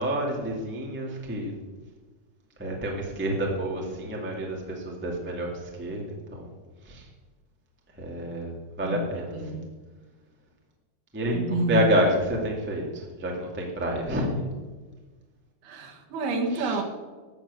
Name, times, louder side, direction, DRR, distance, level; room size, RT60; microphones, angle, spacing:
voice 1, 0.0-1.5 2.6-6.5 6.8-7.0 8.0-9.6 11.1-14.4 16.5-16.8, right 1 dB, 5° right, -1 dB, 1.0 m, -29 dB
voice 2, 11.3-11.9 15.6-16.8, right 1 dB, 70° right, 3 dB, 3.3 m, -28 dB
13.5 x 7.4 x 8.4 m, 1.3 s
omnidirectional pair, 4.8 m